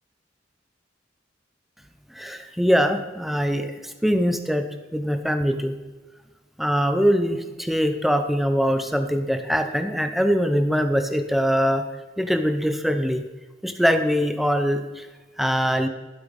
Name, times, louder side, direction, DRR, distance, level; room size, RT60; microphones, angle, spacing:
voice 1, 2.1-4.6 4.9-5.8 6.6-11.8 12.2-13.2 13.6-15.1 15.4-15.9, equal, ahead, 8 dB, 0.9 m, -22 dB
12.5 x 7.9 x 5.4 m, 1.2 s
head